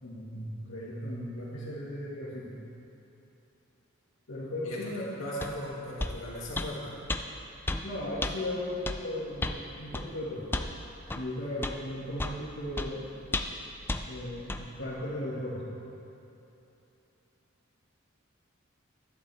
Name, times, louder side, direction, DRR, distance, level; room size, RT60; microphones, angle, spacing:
voice 1, 0.0-2.5 4.3-5.0 7.8-10.5 11.1-13.1 14.1-15.8, left 1 dB, 90° left, -9 dB, 2.0 m, -36 dB
voice 2, 5.2-6.9, equal, 70° left, -6 dB, 2.6 m, -37 dB
sound 1, 5.4-5.5 6.0-6.2 6.6-6.7 7.1-7.2 7.7-7.8 8.2-8.3 8.9-9.0 9.4-9.6 9.9-10.1 10.5-10.7 11.1-11.2 11.6-11.8 12.2-12.4 12.8-12.9 13.3-13.6 13.9-14.0 14.5-14.6, left 2 dB, 10° left, 0.4 m, -32 dB
12.0 x 11.5 x 3.5 m, 2.9 s
head